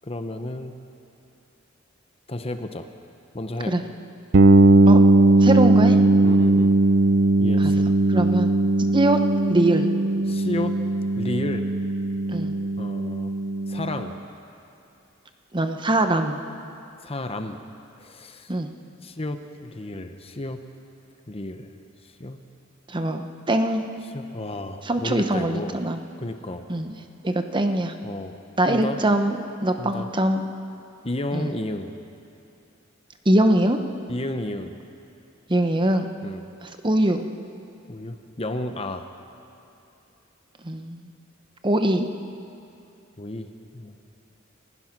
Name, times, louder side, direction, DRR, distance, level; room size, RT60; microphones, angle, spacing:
voice 1, 0.0-0.7 2.3-2.9 3.3-3.7 6.2-6.7 7.4-7.9 10.3-10.8 11.2-11.7 12.8-13.3 13.7-14.2 17.0-17.6 18.0-18.5 19.0-20.6 21.3-21.7 22.2-22.4 24.1-25.8 26.2-26.7 28.0-28.4 28.7-29.0 29.8-30.1 31.0-31.9 34.1-34.8 36.2-36.4 37.9-39.1 43.2-44.0, left 1 dB, 30° left, 7 dB, 1.1 m, -32 dB
sound 1, 4.3-14.0, right 2 dB, 60° right, 0.7 m, -18 dB
voice 2, 5.3-6.0 7.6-7.7 8.1-8.5 8.9-9.2 9.5-9.9 12.3-12.5 15.5-16.4 18.5-18.7 22.9-23.9 24.8-26.0 26.7-26.9 27.2-27.9 28.6-30.5 31.3-31.5 33.2-33.8 35.5-36.1 36.6-37.2 40.6-41.1 41.6-42.1, right 1 dB, 25° right, 6 dB, 1.0 m, -22 dB
29.0 x 15.5 x 6.1 m, 2.7 s
head